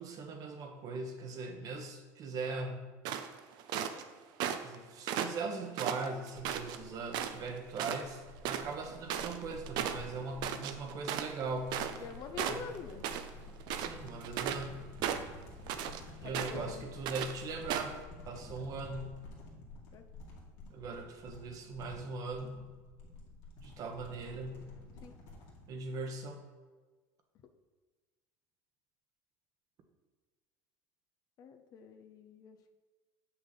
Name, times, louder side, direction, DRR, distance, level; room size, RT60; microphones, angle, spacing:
voice 1, 0.0-2.9 4.6-12.0 12.5-12.7 13.8-14.8 16.2-17.9 18.3-19.2 20.7-22.6 23.6-24.7 25.7-26.4, right 3 dB, 45° right, 5 dB, 1.2 m, -40 dB
sound 1, 3.1-4.0 4.4-4.8 5.1-6.8 7.1-7.5 7.8-8.0 8.3-12.1 12.4-13.3 13.6-14.7 15.0-16.0 16.3-16.7 17.1-17.3 17.7-18.0, right 9 dB, 60° right, 0.6 m, -36 dB
sound 2, 6.4-25.7, left 2 dB, 70° left, 2.0 m, -51 dB
voice 2, 11.9-13.1 16.2-16.9 19.9-20.0 25.0-25.2 31.4-32.7, left 6 dB, 50° left, 7 dB, 0.7 m, -46 dB
7.2 x 5.7 x 4.1 m, 1.3 s
supercardioid pair, 115°, 8 cm